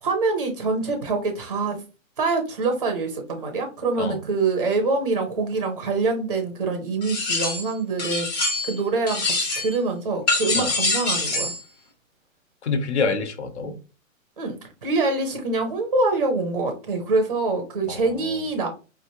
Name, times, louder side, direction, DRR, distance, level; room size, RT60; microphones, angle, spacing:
voice 1, 0.0-1.8 2.2-11.5 14.4-18.7, right 3 dB, 30° right, 0.5 m, -25 dB
sound 1, 7.0-7.7 8.0-8.8 9.1-9.8 10.3-11.6, left 2 dB, 30° left, 1.2 m, -25 dB
voice 2, 12.6-13.8 17.9-18.4, left 4 dB, 55° left, 0.9 m, -27 dB
4.8 x 3.1 x 2.7 m
hypercardioid pair, 175°, 41 cm